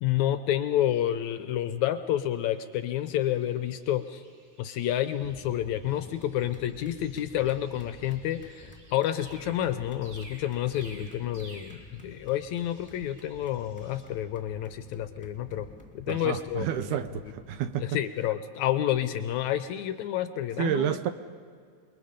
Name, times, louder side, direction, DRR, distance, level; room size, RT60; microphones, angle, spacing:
voice 1, 0.0-4.2 4.6-15.7 16.0-17.0 17.8-21.0, left 12 dB, 75° left, 10 dB, 1.9 m, -29 dB
sound 1, 2.3-14.1, right 1 dB, 45° right, 6.0 m, -55 dB
sound 2, 5.2-17.9, left 2 dB, 5° left, 2.0 m, -51 dB
voice 2, 16.1-17.8 20.6-21.1, right 9 dB, 75° right, 11 dB, 2.1 m, -30 dB
28.5 x 21.5 x 5.1 m, 2.1 s
omnidirectional pair, 3.7 m